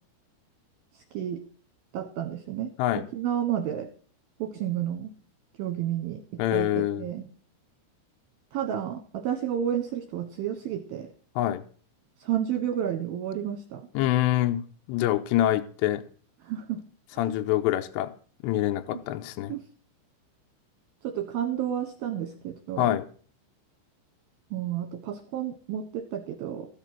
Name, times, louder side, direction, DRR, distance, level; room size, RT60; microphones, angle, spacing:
voice 1, 1.9-2.7 3.1-3.9 4.4-5.1 5.6-7.2 8.5-11.1 12.2-13.9 16.4-16.8 17.1-17.2 19.5-19.6 21.0-22.9 24.5-26.7, right 10 dB, 70° right, 5 dB, 2.3 m, -31 dB
voice 2, 6.4-7.1 11.4-11.6 13.9-14.6 14.9-16.0 17.2-18.1 18.4-19.5 22.8-23.1, left 13 dB, 80° left, 8 dB, 2.6 m, -25 dB
15.0 x 6.8 x 6.0 m, 0.43 s
omnidirectional pair, 5.7 m